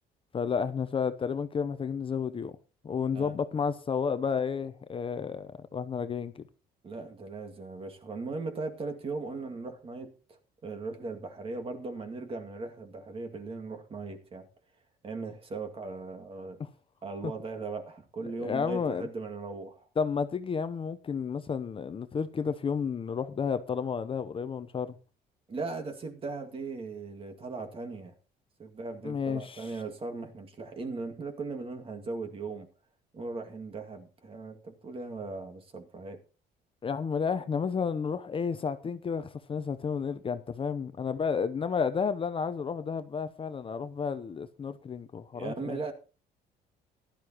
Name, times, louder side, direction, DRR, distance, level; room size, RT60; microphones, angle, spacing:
voice 1, 0.3-2.5 2.8-6.4 16.6-16.7 18.4-19.1 20.0-24.9 29.0-29.7 36.8-45.8, left 6 dB, 30° left, 12 dB, 0.8 m, -31 dB
voice 2, 6.8-14.5 15.0-16.6 17.0-19.8 25.5-28.1 28.6-32.7 33.1-36.2 45.3-45.9, right 3 dB, 35° right, 5 dB, 2.2 m, -38 dB
15.5 x 12.0 x 3.0 m, 0.33 s
cardioid pair, 110°, 17 cm